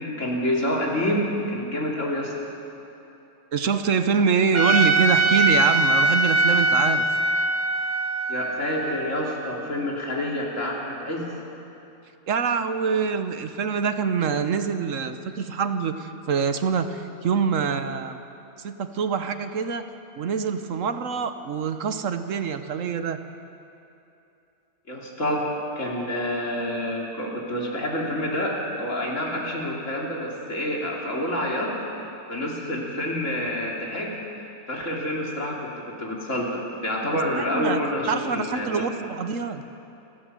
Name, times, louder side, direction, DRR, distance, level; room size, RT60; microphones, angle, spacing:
voice 1, 0.0-2.3 8.3-11.3 24.9-38.9, left 1 dB, 55° left, -3 dB, 3.5 m, -28 dB
voice 2, 3.5-7.0 12.3-18.2 18.6-23.2 37.3-37.8 38.1-39.6, right 6 dB, 65° right, 9 dB, 1.3 m, -25 dB
Trumpet, 4.5-9.7, right 2 dB, 35° right, 1.2 m, -22 dB
28.5 x 12.0 x 7.6 m, 2.8 s
omnidirectional pair, 1.5 m